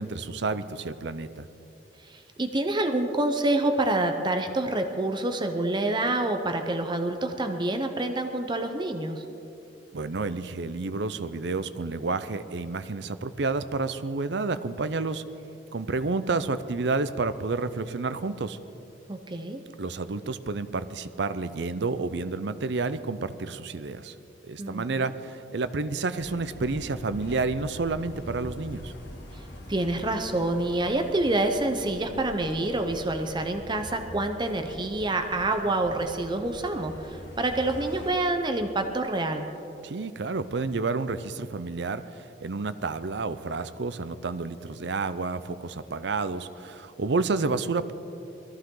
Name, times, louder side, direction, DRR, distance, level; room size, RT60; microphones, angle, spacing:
voice 1, 0.0-1.5 9.9-15.2 15.7-18.6 19.8-24.1 24.4-28.9 39.8-47.9, right 3 dB, 70° right, 12 dB, 0.6 m, -30 dB
voice 2, 2.0-9.2 19.1-19.6 24.6-25.1 29.3-29.4 29.7-39.5, right 2 dB, 25° right, 6 dB, 0.8 m, -27 dB
Walking on street - Traffic + Random Birds (Sao Paulo), 26.2-38.1, equal, 75° left, 2.2 m, -43 dB
21.0 x 14.5 x 3.9 m, 2.8 s
head